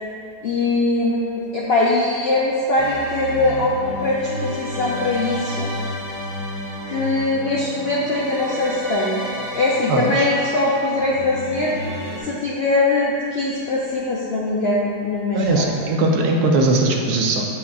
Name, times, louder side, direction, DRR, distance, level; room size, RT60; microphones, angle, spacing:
voice 1, 0.4-5.7 6.9-11.7 12.2-15.7, left 2 dB, 75° left, -5 dB, 0.5 m, -21 dB
sound 1, 2.8-12.2, equal, 55° right, 1.3 m, -31 dB
voice 2, 9.9-10.3 15.3-17.4, right 2 dB, 75° right, 0 dB, 1.2 m, -19 dB
8.2 x 5.2 x 2.3 m, 2.5 s
omnidirectional pair, 1.8 m